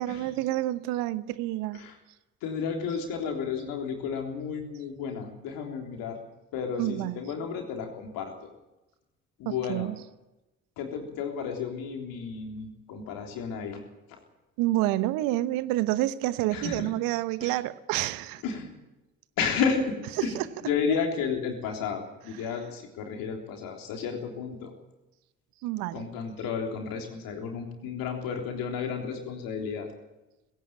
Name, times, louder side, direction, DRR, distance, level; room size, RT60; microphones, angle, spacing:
voice 1, 0.0-1.8 6.8-7.2 9.5-10.0 14.6-18.4 20.2-20.5 25.6-26.0, right 16 dB, 65° right, 15 dB, 1.1 m, -28 dB
voice 2, 2.4-6.2 6.5-8.3 9.4-9.9 10.8-13.8 16.5-16.9 17.4-17.6 18.4-18.7 19.4-20.3 20.6-24.7 25.9-29.9, left 6 dB, 65° left, 3 dB, 3.5 m, -32 dB
19.5 x 17.0 x 8.8 m, 0.99 s
figure-of-eight pair, 40°, 36 cm